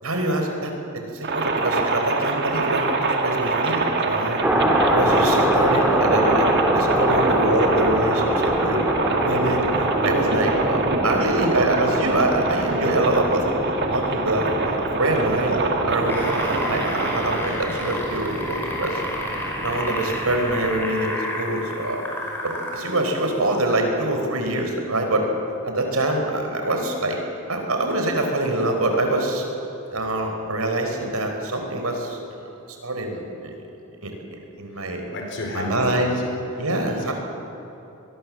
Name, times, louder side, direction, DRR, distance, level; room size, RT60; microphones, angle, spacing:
voice 1, 0.0-2.9 3.2-4.4 4.9-8.9 9.2-13.4 13.9-19.0 19.6-22.0 22.4-25.2 25.6-27.2 27.5-29.4 29.9-32.2 32.8-33.5 34.0-34.1 34.6-35.0 35.5-36.2 36.6-37.1, right 1 dB, 80° right, 3 dB, 4.5 m, -25 dB
sound 1, 1.2-17.4, right 3 dB, 50° right, 2.2 m, -25 dB
sound 2, 4.4-20.9, equal, 5° right, 2.5 m, -25 dB
sound 3, 15.9-22.9 23.7-23.8, left 1 dB, 10° left, 5.5 m, -30 dB
voice 2, 35.1-35.9 37.1-37.2, left 2 dB, 60° left, 1 dB, 4.4 m, -31 dB
24.5 x 21.5 x 7.7 m, 3.0 s
head